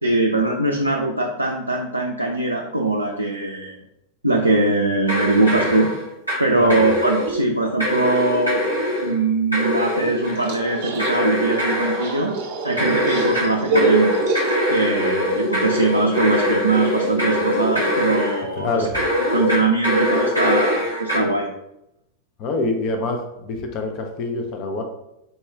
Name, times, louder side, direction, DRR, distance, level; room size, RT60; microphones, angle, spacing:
voice 1, 0.0-3.8 4.2-5.9 6.4-8.6 9.0-12.3 12.6-14.1 14.7-18.9 19.3-21.5, right 2 dB, 85° right, 1 dB, 0.3 m, -21 dB
sound 1, 5.1-6.4 6.7-7.4 7.8-9.1 9.5-10.5 11.0-12.2 12.8-18.4 18.9-21.2, equal, 90° left, 1.1 m, -22 dB
sound 2, 10.1-15.0, right 2 dB, 50° right, 0.7 m, -26 dB
voice 2, 18.6-19.0 22.4-24.8, left 3 dB, 40° left, 3 dB, 0.5 m, -25 dB
4.2 x 2.3 x 3.2 m, 0.85 s
figure-of-eight pair, 90°, 0 cm